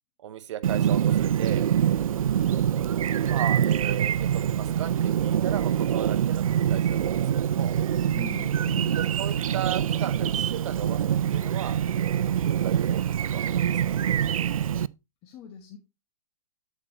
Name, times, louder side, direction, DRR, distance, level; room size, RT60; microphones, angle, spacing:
voice 1, 0.2-1.6 3.3-7.7 9.0-11.8 12.1-14.0, right 11 dB, 55° right, 1.3 m, -36 dB
Chirp tweet, 0.6-14.9, right 9 dB, 70° right, 0.4 m, -25 dB
voice 2, 2.4-2.7 8.1-9.0 15.2-15.8, left 6 dB, 30° left, 1.4 m, -41 dB
8.8 x 8.1 x 2.8 m
figure-of-eight pair, 115°, 18 cm